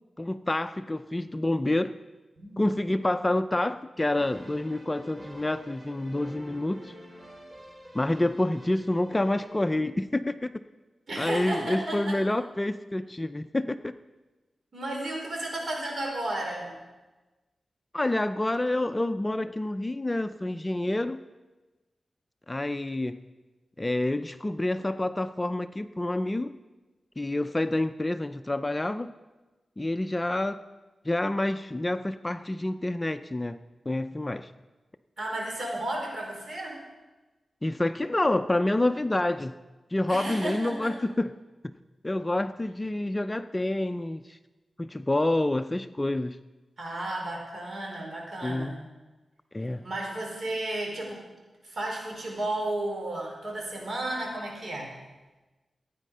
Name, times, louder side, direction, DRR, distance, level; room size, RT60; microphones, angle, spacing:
voice 1, 0.2-2.0 2.6-6.9 7.9-10.5 11.2-13.9 17.9-21.2 22.5-23.2 23.8-26.5 27.2-29.1 29.8-30.6 31.0-33.6 33.9-34.5 37.6-39.5 39.9-41.3 42.0-44.4 44.8-46.4 48.4-48.8 49.5-49.8, left 1 dB, 20° left, 10 dB, 0.5 m, -28 dB
sound 1, 4.0-9.7, right 1 dB, 30° right, 3.8 m, -48 dB
voice 2, 11.1-12.2 14.7-16.7 35.2-36.8 40.1-40.9 46.8-48.8 49.8-51.2 51.6-54.9, right 1 dB, 55° right, -1 dB, 5.1 m, -33 dB
16.0 x 9.3 x 5.6 m, 1.2 s
cardioid pair, 65°, 0 cm